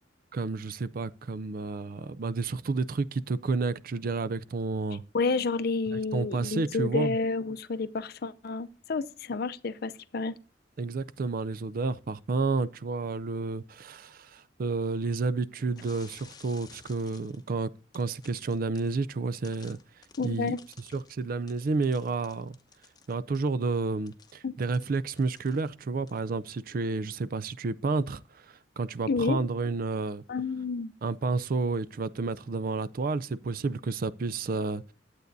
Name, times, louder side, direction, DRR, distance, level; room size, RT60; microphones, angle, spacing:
voice 1, 0.3-5.0 5.9-7.2 10.8-17.7 17.9-19.8 20.2-20.5 20.9-22.6 23.1-30.2 31.0-34.8, right 3 dB, 50° right, 0.4 m, -30 dB
voice 2, 5.1-10.3 20.2-20.6 24.4-24.6 29.1-29.4 30.3-30.9, left 4 dB, 60° left, 0.5 m, -30 dB
sound 1, 15.8-17.5 17.9-19.0 19.4-23.5 24.1-25.8 26.1-26.3, left 5 dB, 25° left, 0.8 m, -54 dB
11.5 x 8.1 x 2.6 m
head